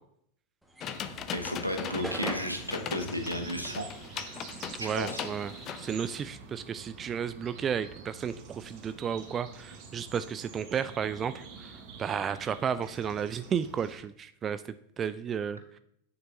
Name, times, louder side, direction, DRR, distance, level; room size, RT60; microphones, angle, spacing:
sound 1, 0.6-5.3 5.6-7.6, right 1 dB, 5° right, 1.3 m, -44 dB
sound 2, 0.8-6.2, left 9 dB, 30° left, 0.6 m, -39 dB
sound 3, 0.8-14.0, right 5 dB, 40° right, 1.4 m, -47 dB
voice 1, 1.3-3.9 4.1-4.5 4.8-5.2, equal, 90° right, 5 dB, 1.0 m, -34 dB
voice 2, 4.8-11.7 12.0-14.6 15.0-15.8, right 7 dB, 25° right, 13 dB, 0.3 m, -33 dB
9.4 x 6.8 x 2.8 m, 0.71 s
figure-of-eight pair, 90°, 0 cm